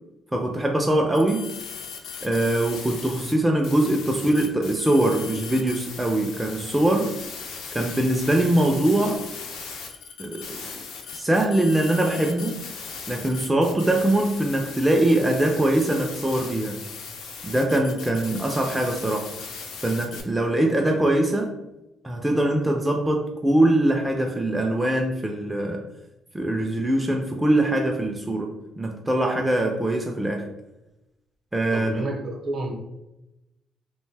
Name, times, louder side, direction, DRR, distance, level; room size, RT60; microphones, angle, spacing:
voice 1, 0.3-1.5 2.2-7.1 7.7-9.2 10.2-10.6 11.1-12.6 13.1-16.8 17.4-19.3 19.8-21.5 22.0-25.8 26.3-30.5 31.5-32.0, right 1 dB, 10° right, 1 dB, 0.3 m, -22 dB
sound 1, 1.1-3.3 3.6-20.2, left 5 dB, 85° left, 0.5 m, -38 dB
voice 2, 31.7-32.7, right 2 dB, 50° right, 2 dB, 0.7 m, -30 dB
2.6 x 2.1 x 3.2 m, 0.94 s
cardioid pair, 95°, 0 cm